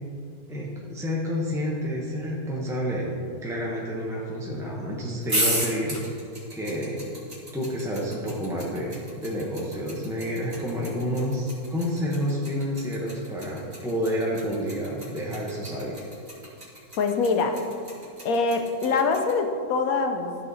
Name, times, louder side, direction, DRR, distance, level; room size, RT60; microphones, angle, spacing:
voice 1, 0.5-6.2 6.5-7.0 7.5-15.9, equal, ahead, -5 dB, 0.7 m, -29 dB
sound 1, 5.2-19.3, right 1 dB, 20° right, 2.3 m, -33 dB
voice 2, 17.0-17.6 18.2-20.4, left 4 dB, 60° left, 5 dB, 1.1 m, -24 dB
13.5 x 4.9 x 4.1 m, 2.4 s
omnidirectional pair, 1.9 m